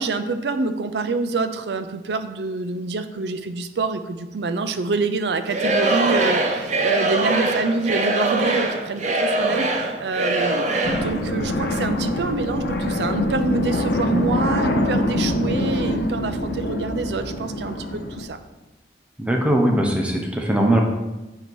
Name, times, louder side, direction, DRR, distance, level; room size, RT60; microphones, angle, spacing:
voice 1, 0.0-18.4, right 3 dB, 70° right, 10 dB, 0.5 m, -26 dB
Singing / Crowd, 5.5-11.1, right 2 dB, 40° right, 0.7 m, -22 dB
sound 1, 10.8-18.3, left 1 dB, 65° left, 0.6 m, -24 dB
voice 2, 19.2-20.8, right 1 dB, 5° right, 1 dB, 0.7 m, -20 dB
8.0 x 2.8 x 4.6 m, 1.1 s
head